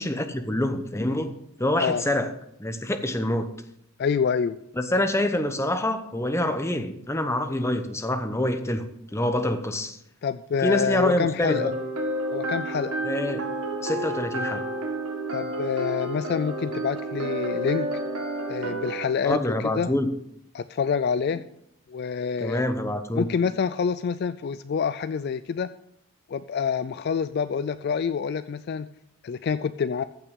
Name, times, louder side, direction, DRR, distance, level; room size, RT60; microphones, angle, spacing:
voice 1, 0.0-1.3 1.6-2.3 2.6-3.5 4.8-8.8 9.1-10.0 10.6-11.7 13.0-13.4 13.8-14.6 19.2-20.1 22.4-23.3, left 1 dB, 10° left, 0.8 m, -26 dB
voice 2, 4.0-4.6 10.2-11.7 12.3-12.9 15.3-17.9 18.5-19.4 19.8-19.9 20.5-21.4 21.9-22.7 23.2-25.7 26.3-28.9 29.2-30.0, left 6 dB, 45° left, 0.3 m, -27 dB
sound 1, 11.5-19.1, right 1 dB, 85° right, 1.9 m, -30 dB
15.0 x 5.9 x 5.2 m
head